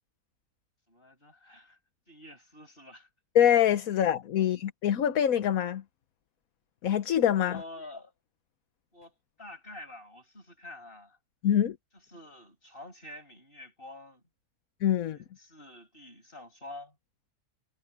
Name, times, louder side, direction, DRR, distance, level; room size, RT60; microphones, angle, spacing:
voice 1, 0.9-1.8 2.1-3.1 7.4-8.1 8.9-11.2 12.1-14.2 15.0-16.9, left 2 dB, 30° left, 8.0 m, -47 dB
voice 2, 3.3-5.8 6.8-7.6 11.4-11.8 14.8-15.2, left 10 dB, 65° left, 1.3 m, -24 dB
omnidirectional pair, 1.7 m